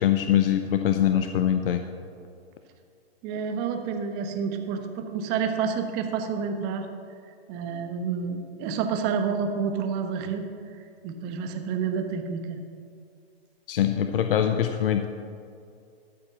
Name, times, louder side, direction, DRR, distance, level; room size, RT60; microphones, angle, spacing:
voice 1, 0.0-1.8 13.7-15.1, left 10 dB, 60° left, 7 dB, 0.7 m, -23 dB
voice 2, 3.2-6.9 7.5-10.4 11.0-12.6, right 6 dB, 30° right, 5 dB, 1.2 m, -29 dB
13.5 x 5.1 x 7.2 m, 2.4 s
hypercardioid pair, 130°, 31 cm